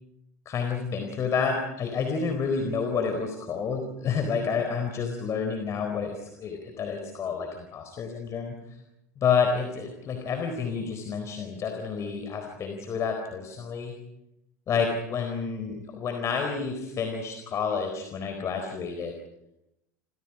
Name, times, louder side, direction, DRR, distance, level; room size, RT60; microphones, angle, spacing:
voice 1, 0.5-8.6 9.2-13.9 14.7-19.1, left 5 dB, 35° left, 4 dB, 4.3 m, -29 dB
30.0 x 28.0 x 5.0 m, 0.86 s
figure-of-eight pair, 75°, 9 cm